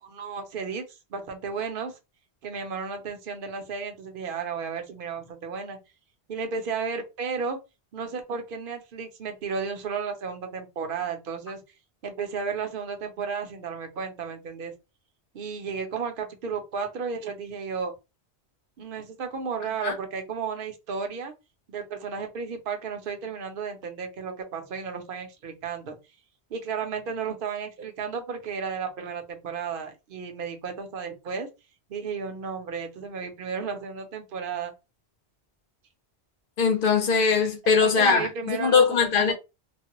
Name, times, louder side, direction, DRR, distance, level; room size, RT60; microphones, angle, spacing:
voice 1, 0.0-1.9 2.4-5.8 6.3-7.6 7.9-11.6 12.0-14.7 15.3-17.9 18.8-21.3 21.7-26.0 26.5-31.5 31.9-34.7 37.6-39.3, right 5 dB, 55° right, 0.8 m, -33 dB
voice 2, 36.6-39.3, left 5 dB, 55° left, 0.8 m, -21 dB
3.1 x 2.1 x 2.9 m
omnidirectional pair, 1.1 m